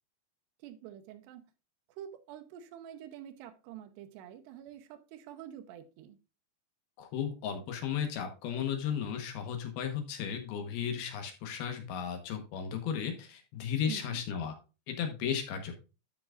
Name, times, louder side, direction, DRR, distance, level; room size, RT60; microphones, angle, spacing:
voice 1, 0.6-1.4 2.0-6.2 13.9-14.2, right 10 dB, 80° right, 3.0 m, -47 dB
voice 2, 7.0-14.5 14.9-15.8, left 8 dB, 70° left, 3.0 m, -35 dB
12.5 x 6.0 x 2.4 m
omnidirectional pair, 4.8 m